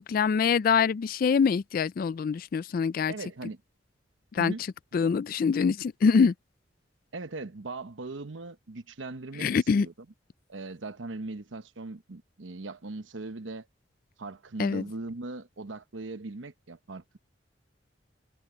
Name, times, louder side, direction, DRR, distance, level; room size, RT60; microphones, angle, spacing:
voice 1, 0.0-3.1 4.3-4.5 4.9-6.3 9.4-9.9 14.6-14.8, left 6 dB, 50° left, 0.3 m, -24 dB
voice 2, 3.1-3.6 4.4-4.6 7.1-9.5 9.8-9.9 10.5-13.7 14.2-17.2, right 3 dB, 85° right, 1.0 m, -39 dB
head